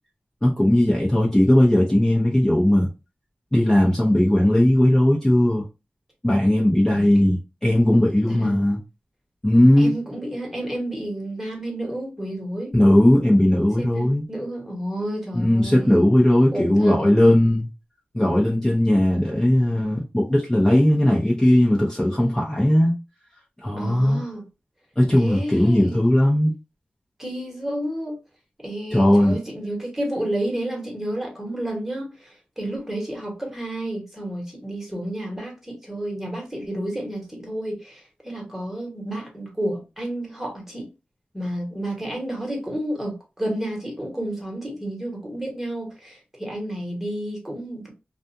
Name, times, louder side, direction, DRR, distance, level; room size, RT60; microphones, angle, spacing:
voice 1, 0.4-2.9 3.5-5.6 6.2-8.8 9.4-9.9 12.7-14.2 15.3-17.7 18.1-22.9 23.6-24.2 25.0-26.5 28.9-29.4, left 1 dB, 15° left, 0.7 m, -18 dB
voice 2, 6.8-7.3 8.3-8.6 9.8-12.7 13.8-16.1 16.5-17.1 23.8-24.4 25.1-26.0 27.2-28.2 28.6-40.9 41.3-47.9, right 1 dB, 10° right, 1.2 m, -31 dB
2.4 x 2.3 x 2.7 m
wide cardioid pair, 85°, 4 cm